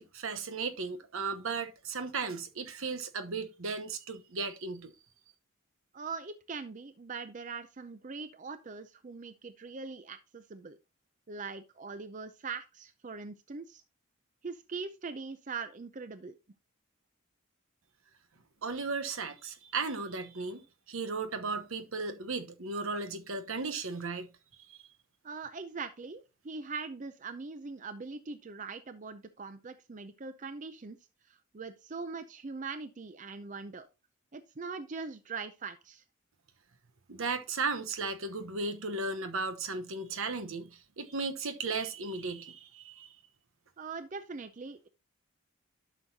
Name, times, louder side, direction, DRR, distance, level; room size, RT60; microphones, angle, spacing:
voice 1, 0.0-4.9 18.6-24.3 24.6-24.8 37.1-43.2, right 4 dB, 75° right, 1.0 m, -36 dB
voice 2, 5.9-10.8 11.3-13.8 14.4-16.3 25.2-31.0 31.3-33.9 34.3-36.0 43.8-44.9, right 4 dB, 35° right, 0.5 m, -41 dB
11.5 x 6.2 x 2.8 m
head